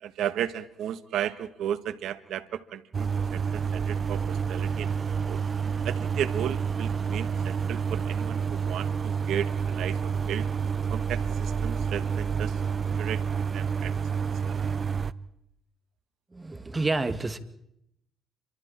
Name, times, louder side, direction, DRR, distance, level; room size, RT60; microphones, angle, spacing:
voice 1, 0.0-5.4 5.8-10.5 10.9-12.6 12.9-13.2 13.5-13.9 14.5-14.6, right 10 dB, 75° right, 14 dB, 1.4 m, -34 dB
sound 1, 2.9-15.1, right 6 dB, 40° right, 0.9 m, -29 dB
voice 2, 16.3-17.4, right 3 dB, 25° right, 11 dB, 2.3 m, -29 dB
28.5 x 25.0 x 4.4 m, 0.76 s
supercardioid pair, 70°, 0 cm